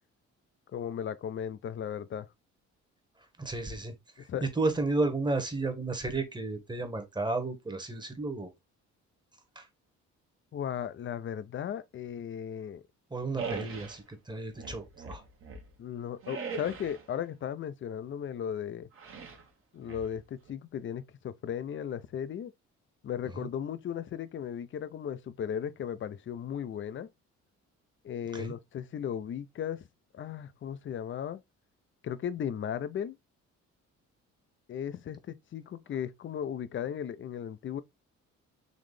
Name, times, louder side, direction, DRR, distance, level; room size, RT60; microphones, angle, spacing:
voice 1, 0.7-2.3 4.3-4.5 10.5-12.8 15.8-18.9 19.7-22.5 23.0-27.1 28.0-29.8 30.1-31.4 32.0-33.2 34.7-37.8, left 9 dB, 40° left, 0.5 m, -36 dB
voice 2, 3.4-8.5 9.6-9.7 13.1-15.2 23.4-23.5 28.3-28.5, right 3 dB, 15° right, 1.1 m, -33 dB
sound 1, 13.4-14.0 14.5-15.7 16.2-17.1 19.0-19.4 19.8-20.5, right 5 dB, 45° right, 1.0 m, -40 dB
4.0 x 3.1 x 3.1 m
cardioid pair, 90°, 30 cm